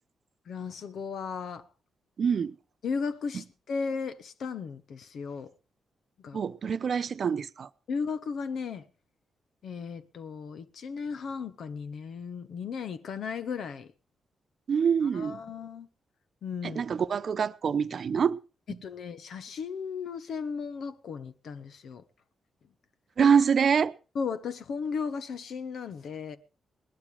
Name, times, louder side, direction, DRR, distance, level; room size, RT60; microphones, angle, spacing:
voice 1, 0.5-1.6 2.8-5.5 6.2-6.4 7.9-8.9 9.6-13.9 15.1-15.9 16.4-16.8 18.8-22.0 24.1-26.4, left 5 dB, 70° left, 1.2 m, -35 dB
voice 2, 2.2-2.5 3.3-3.4 6.3-7.7 14.7-15.4 16.6-18.4 18.7-18.8 23.2-23.9, right 6 dB, 60° right, 0.9 m, -25 dB
19.0 x 12.0 x 5.0 m
supercardioid pair, 45°, 0 cm